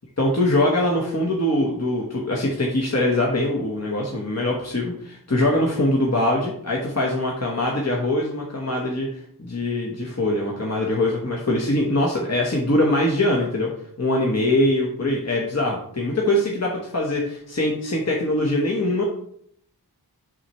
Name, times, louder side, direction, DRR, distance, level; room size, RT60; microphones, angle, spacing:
voice 1, 0.2-13.7 14.0-19.0, left 1 dB, 40° left, -2 dB, 1.1 m, -23 dB
7.4 x 5.6 x 3.1 m, 0.67 s
wide cardioid pair, 50°, 41 cm